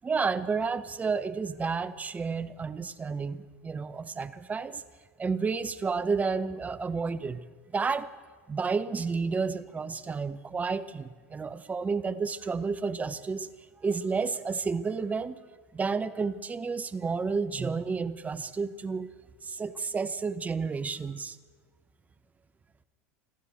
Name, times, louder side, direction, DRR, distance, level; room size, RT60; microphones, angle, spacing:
voice 1, 0.0-4.8 5.2-7.4 7.7-8.1 8.5-13.5 13.8-15.4 15.7-19.1 19.4-21.4, right 5 dB, 20° right, 14 dB, 0.8 m, -31 dB
27.0 x 12.0 x 4.2 m, 1.5 s
hypercardioid pair, 90°, 8 cm